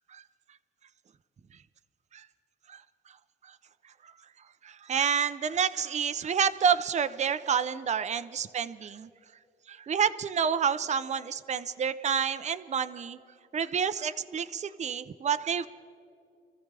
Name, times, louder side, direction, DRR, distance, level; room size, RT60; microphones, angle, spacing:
voice 1, 4.6-9.1 9.7-13.2 13.5-15.7, right 7 dB, 35° right, 11 dB, 0.6 m, -29 dB
26.0 x 14.5 x 3.4 m, 2.5 s
cardioid pair, 90°, 20 cm